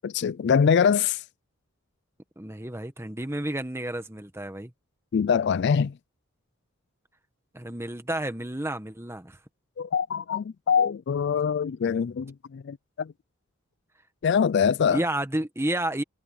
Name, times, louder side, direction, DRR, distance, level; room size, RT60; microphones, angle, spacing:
voice 1, 0.0-1.2 5.1-5.9 9.8-13.1 14.2-15.0, left 6 dB, 55° left, 0.3 m, -24 dB
voice 2, 2.4-4.7 7.5-9.4 14.9-16.0, right 1 dB, 10° right, 1.5 m, -31 dB
head